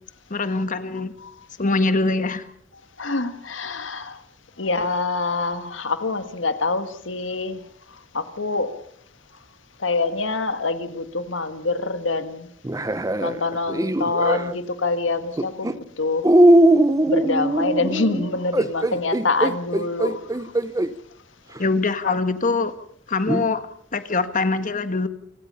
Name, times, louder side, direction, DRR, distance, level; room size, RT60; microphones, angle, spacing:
voice 1, 0.3-1.1 1.6-2.4 21.6-22.7 23.1-23.6 23.9-25.1, left 3 dB, 45° left, 10 dB, 1.6 m, -23 dB
voice 2, 3.0-4.2 4.6-7.6 8.1-8.8 9.8-12.5 13.2-16.3 17.1-20.2 22.0-22.2, left 3 dB, 75° left, 10 dB, 1.7 m, -25 dB
sound 1, 12.6-14.6 15.4-15.7 16.2-20.9 21.6-21.7 23.3-23.5, right 1 dB, 20° right, 0.8 m, -20 dB
29.0 x 17.0 x 5.6 m, 0.67 s
head